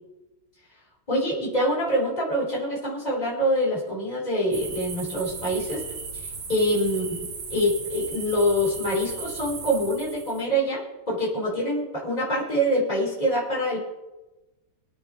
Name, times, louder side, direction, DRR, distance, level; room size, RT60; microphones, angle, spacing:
voice 1, 1.1-5.8 6.1-7.2 7.5-13.8, equal, 20° left, -6 dB, 4.7 m, -25 dB
sound 1, 4.5-10.4, right 5 dB, 75° right, 2.3 m, -37 dB
26.0 x 8.8 x 3.2 m, 1.1 s
omnidirectional pair, 2.2 m